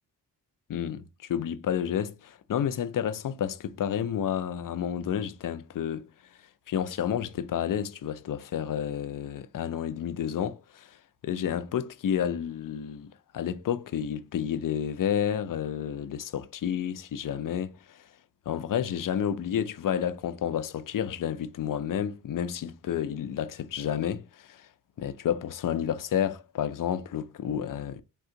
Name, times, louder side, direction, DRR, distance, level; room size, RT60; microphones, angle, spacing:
voice 1, 0.7-6.1 6.7-10.9 11.2-18.0 18.5-24.7 25.0-28.0, left 9 dB, 50° left, 0.5 m, -30 dB
3.6 x 2.4 x 2.8 m
supercardioid pair, 40°, 42 cm